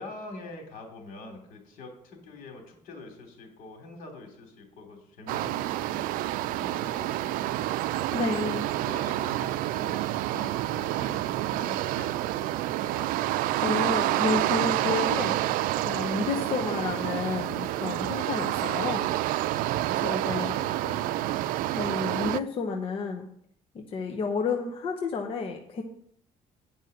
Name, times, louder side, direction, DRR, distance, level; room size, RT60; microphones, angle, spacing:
voice 1, 0.0-7.9 8.3-10.0 10.3-13.1 16.0-16.2 18.1-18.5 19.5-21.7, left 2 dB, 75° left, 3 dB, 3.0 m, -45 dB
sound 1, 5.3-22.4, right 15 dB, 90° right, 0.4 m, -28 dB
voice 2, 8.1-8.7 13.6-15.4 15.8-19.1 20.0-20.5 21.7-23.3 23.7-25.8, left 4 dB, 40° left, 2 dB, 0.9 m, -30 dB
9.3 x 5.5 x 7.8 m, 0.68 s
cardioid pair, 160°, 14 cm